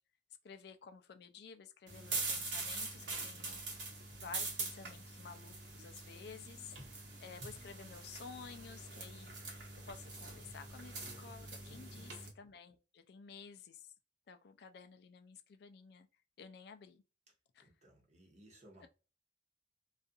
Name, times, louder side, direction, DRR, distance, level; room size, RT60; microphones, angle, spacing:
voice 1, 0.4-3.9 4.2-9.5 9.9-13.9 14.3-16.1 16.4-17.0 17.5-17.7 18.8-18.9, left 6 dB, 60° left, 0.3 m, -53 dB
sound 1, 1.9-12.3, right 3 dB, 75° right, 1.1 m, -43 dB
voice 2, 11.7-12.1 17.6-18.9, right 1 dB, 40° right, 1.0 m, -61 dB
2.4 x 2.4 x 2.5 m
head